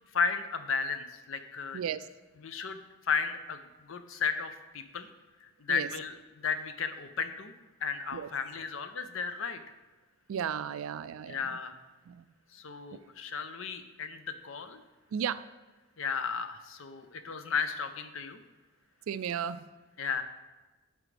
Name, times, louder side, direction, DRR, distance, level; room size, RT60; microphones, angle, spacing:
voice 1, 0.1-1.8 2.4-5.1 5.4-7.5 7.8-9.6 11.3-11.7 12.5-14.8 16.0-18.4 20.0-20.2, left 5 dB, 70° left, 10 dB, 0.6 m, -34 dB
voice 2, 10.3-11.4 12.1-12.2 15.1-15.4 19.1-19.6, right 8 dB, 80° right, 15 dB, 0.3 m, -34 dB
12.5 x 4.8 x 3.3 m, 1.2 s
head